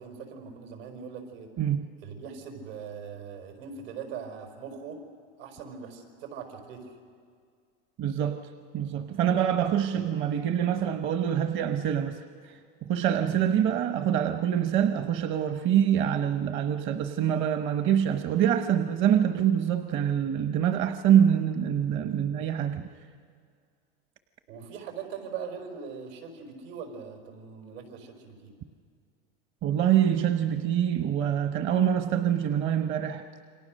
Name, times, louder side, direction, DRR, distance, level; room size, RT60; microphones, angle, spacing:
voice 1, 0.0-1.5 2.0-5.0 5.4-6.9 10.0-10.1 13.2-13.5 24.5-28.5, right 6 dB, 85° right, 3 dB, 5.4 m, -41 dB
voice 2, 8.0-8.4 8.7-12.2 12.4-12.5 12.8-22.9 29.6-33.2, right 9 dB, 40° right, 8 dB, 1.1 m, -25 dB
28.5 x 24.5 x 6.6 m, 2.1 s
supercardioid pair, 125°, 30 cm